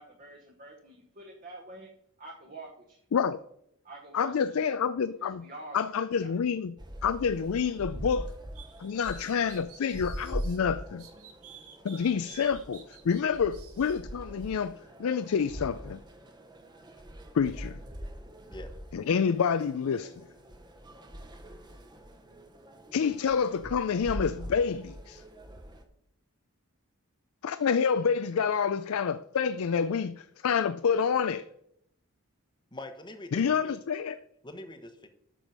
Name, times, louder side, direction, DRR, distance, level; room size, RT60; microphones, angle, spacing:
voice 1, 0.0-1.9 2.2-3.0 3.8-4.7 5.2-5.9 6.2-6.4, right 2 dB, 35° right, 1.2 m, -47 dB
voice 2, 4.1-5.4 5.7-6.7 7.0-8.3 8.8-11.0 11.8-14.7 15.0-16.0 17.3-17.8 18.9-20.1 22.9-25.2 27.4-31.4 33.3-34.2, left 6 dB, 70° left, 0.4 m, -28 dB
sound 1, 6.8-25.8, equal, 20° right, 0.9 m, -43 dB
sound 2, 8.5-10.6 11.0-14.0, right 8 dB, 75° right, 1.8 m, -51 dB
voice 3, 32.7-33.8 34.4-35.1, left 1 dB, 20° left, 0.9 m, -43 dB
9.0 x 6.3 x 5.4 m
head